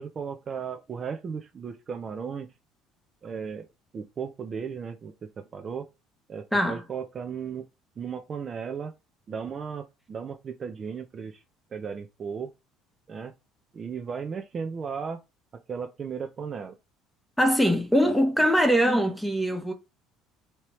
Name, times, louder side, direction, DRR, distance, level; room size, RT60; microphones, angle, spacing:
voice 1, 0.0-2.5 3.2-3.7 3.9-5.9 6.3-7.7 8.0-8.9 9.3-11.4 11.7-12.5 13.1-13.3 13.7-15.2 15.7-16.7 18.0-18.2, right 6 dB, 40° right, 0.5 m, -35 dB
voice 2, 6.5-6.8 17.4-19.7, equal, ahead, 1.0 m, -22 dB
3.2 x 2.9 x 3.0 m
supercardioid pair, 85°, 0 cm